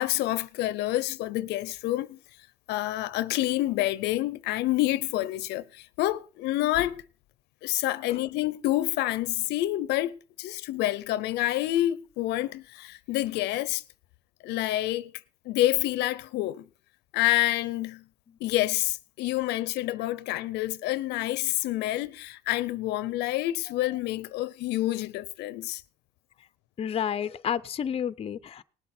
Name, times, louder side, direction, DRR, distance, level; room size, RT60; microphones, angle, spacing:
voice 1, 0.0-2.2 2.7-7.0 7.6-13.8 14.4-15.1 15.5-16.6 17.1-18.0 18.4-25.8, left 16 dB, 85° left, 0.6 m, -28 dB
voice 2, 26.8-28.6, left 8 dB, 35° left, 0.6 m, -30 dB
19.0 x 8.0 x 4.3 m
cardioid pair, 110°, 17 cm